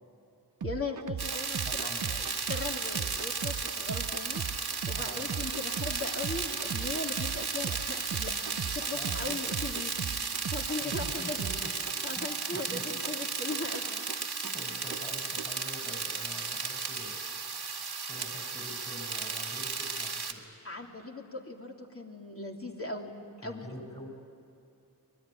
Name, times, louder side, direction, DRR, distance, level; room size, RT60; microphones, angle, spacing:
voice 1, 0.6-8.4 8.7-10.1 10.5-14.0 20.6-23.1 23.4-23.8, left 2 dB, 35° left, 0 dB, 3.1 m, -39 dB
sound 1, 0.6-15.6, right 7 dB, 55° right, 0.6 m, -39 dB
sound 2, 1.2-20.3, right 4 dB, 75° right, 2.1 m, -34 dB
voice 2, 1.7-2.1 4.9-5.3 8.9-9.4 10.8-11.7 12.2-12.3 12.5-12.8 14.5-17.2 18.1-20.4 23.4-24.1, left 1 dB, 15° left, 3 dB, 5.0 m, -45 dB
24.0 x 21.0 x 10.0 m, 2.7 s
wide cardioid pair, 80°, 39 cm